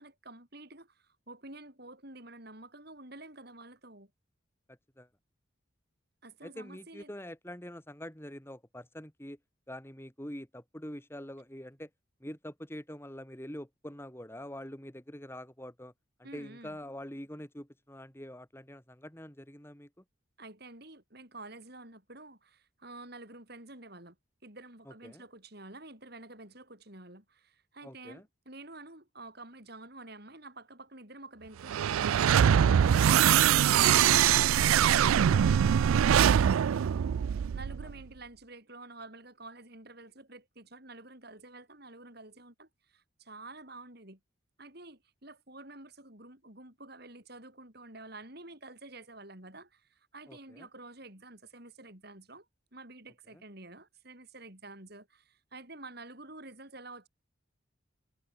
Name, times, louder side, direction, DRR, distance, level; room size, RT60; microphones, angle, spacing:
voice 1, 0.0-4.1 6.2-7.1 16.2-16.8 20.4-24.2 24.4-37.0 37.5-44.2 44.6-52.5 52.7-57.1, right 2 dB, 50° right, 6.2 m, -49 dB
voice 2, 4.7-5.1 6.4-9.4 9.7-11.9 12.2-15.9 16.2-20.0 24.9-25.2 27.8-28.3 50.3-50.7 53.3-53.4, equal, 10° left, 2.6 m, -45 dB
sound 1, 31.6-37.9, right 9 dB, 85° right, 0.3 m, -23 dB
head